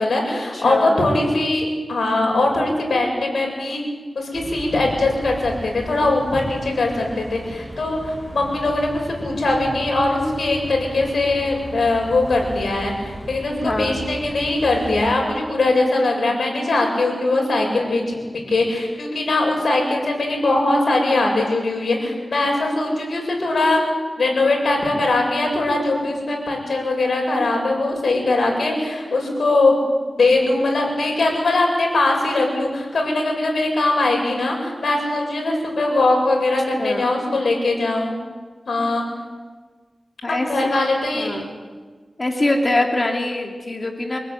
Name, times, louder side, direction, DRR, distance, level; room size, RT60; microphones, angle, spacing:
voice 1, 0.0-3.8 4.1-23.8 24.2-29.8 30.2-38.1 38.7-39.0 40.3-41.3, left 2 dB, 80° left, 1 dB, 7.9 m, -21 dB
voice 2, 0.5-1.1 13.6-14.0 36.8-37.1 40.2-40.5 41.1-41.6 42.2-44.2, left 2 dB, 35° left, 2 dB, 3.0 m, -23 dB
sound 1, 4.3-15.1, right 1 dB, 10° right, 7.3 m, -36 dB
27.0 x 19.0 x 9.4 m, 1.4 s
wide cardioid pair, 80°, 0 cm